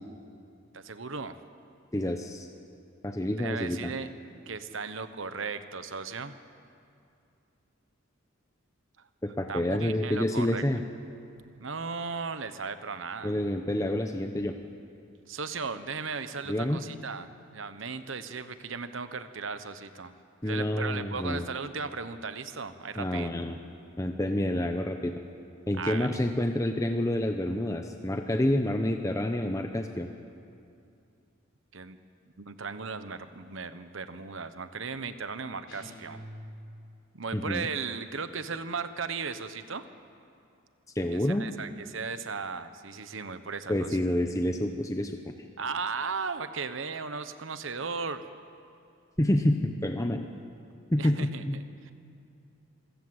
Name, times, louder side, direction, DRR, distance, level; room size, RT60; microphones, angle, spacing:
voice 1, 0.7-1.4 3.4-6.3 9.5-10.6 11.4-13.3 15.3-20.1 20.4-23.3 25.8-26.1 31.7-32.0 32.4-36.2 37.1-39.8 41.1-43.9 45.6-48.2 51.0-51.9, right 5 dB, 65° right, 11 dB, 1.1 m, -36 dB
voice 2, 1.9-2.5 3.0-3.9 9.2-10.8 13.2-14.5 16.5-16.8 20.4-21.4 23.0-23.6 24.0-25.1 25.7-30.1 37.3-37.7 40.9-41.5 43.7-45.3 49.2-50.3 50.9-51.6, left 1 dB, 15° left, 5 dB, 0.8 m, -28 dB
sound 1, 35.7-37.0, equal, 60° left, 5.4 m, -45 dB
26.0 x 15.5 x 8.0 m, 2.6 s
head